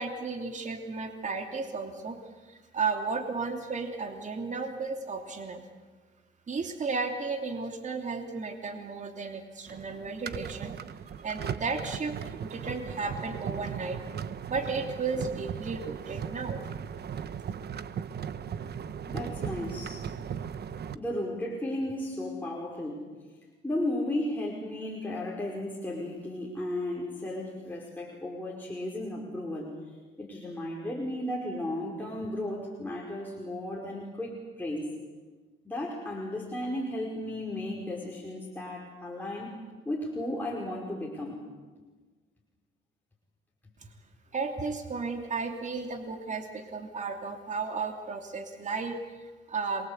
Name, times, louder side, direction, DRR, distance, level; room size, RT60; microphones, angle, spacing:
voice 1, 0.0-2.2 2.5-5.6 6.5-10.7 11.2-14.0 14.5-16.6 44.3-49.9, right 4 dB, 40° right, 4 dB, 3.0 m, -34 dB
sound 1, 9.7-21.0, right 8 dB, 55° right, 1.1 m, -37 dB
voice 2, 19.1-20.0 20.9-23.0 23.6-29.7 30.2-34.9 35.6-39.6 39.9-41.4, left 1 dB, 10° left, -3 dB, 5.4 m, -34 dB
27.5 x 23.0 x 8.3 m, 1.3 s
cardioid pair, 90°, 20 cm